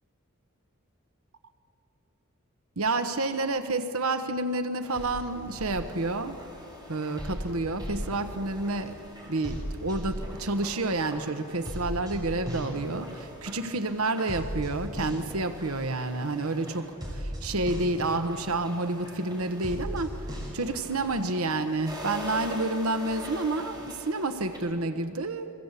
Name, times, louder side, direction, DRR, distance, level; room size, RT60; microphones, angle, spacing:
voice 1, 2.8-6.4 6.9-13.0 13.4-25.5, right 2 dB, 85° right, 9 dB, 1.2 m, -29 dB
sound 1, 4.8-24.6, equal, 20° right, 5.7 m, -39 dB
29.5 x 22.5 x 8.3 m, 2.9 s
head